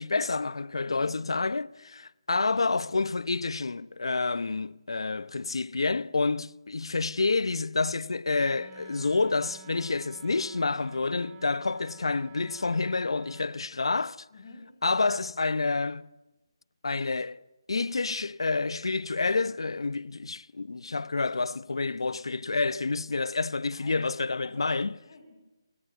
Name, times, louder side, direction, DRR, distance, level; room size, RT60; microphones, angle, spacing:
voice 1, 0.0-14.2 14.8-16.1 16.8-17.4 17.7-24.9, left 3 dB, 90° left, 0.9 m, -28 dB
voice 2, 1.0-1.4 14.3-14.7 23.7-24.0 24.4-25.3, left 3 dB, 40° left, 7.0 m, -48 dB
Wind instrument woodwind instrument, 8.3-13.5, right 6 dB, 20° right, 2.4 m, -52 dB
28.0 x 22.5 x 9.4 m
hypercardioid pair, 170°, 3 cm